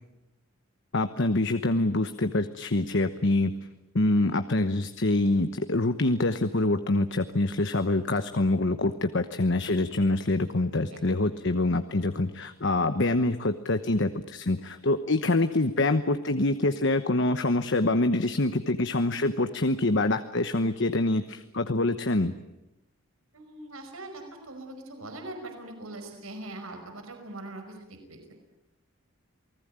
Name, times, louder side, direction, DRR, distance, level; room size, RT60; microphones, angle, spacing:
voice 1, 0.9-3.5 3.9-22.3, left 2 dB, 55° left, 9 dB, 1.1 m, -25 dB
voice 2, 23.3-27.8 28.1-28.3, right 2 dB, 85° right, 5 dB, 5.3 m, -41 dB
28.5 x 20.0 x 8.9 m, 0.97 s
head